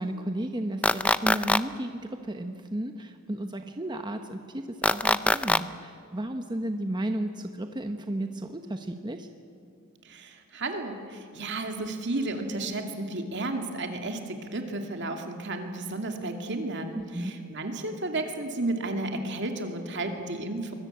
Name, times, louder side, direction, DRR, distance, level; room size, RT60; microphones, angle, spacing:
voice 1, 0.0-2.0 2.3-9.3 16.9-17.3, right 1 dB, 20° right, 6 dB, 1.0 m, -33 dB
sound 1, 0.8-1.6 4.8-5.6, left 2 dB, 5° left, 0.5 m, -22 dB
voice 2, 10.1-20.7, right 2 dB, 60° right, 4 dB, 2.4 m, -33 dB
24.5 x 21.0 x 8.7 m, 2.4 s
head